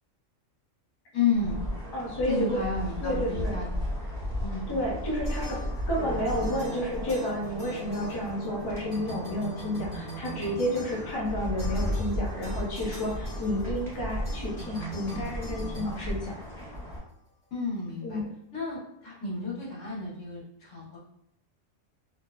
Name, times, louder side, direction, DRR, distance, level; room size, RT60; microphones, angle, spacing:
voice 1, 1.1-1.6 2.3-3.6 4.4-4.9 5.4-5.5 17.5-18.2 18.5-21.0, left 4 dB, 90° left, -7 dB, 1.5 m, -31 dB
sound 1, 1.3-17.0, equal, ahead, 0.8 m, -35 dB
voice 2, 1.9-2.6 3.0-3.6 4.7-16.4 18.0-18.3, left 1 dB, 25° left, -4 dB, 0.5 m, -31 dB
sound 2, 5.2-6.0 6.2-8.6 8.9-16.8, right 2 dB, 60° left, 1.2 m, -43 dB
3.1 x 2.0 x 2.4 m, 0.76 s
omnidirectional pair, 1.3 m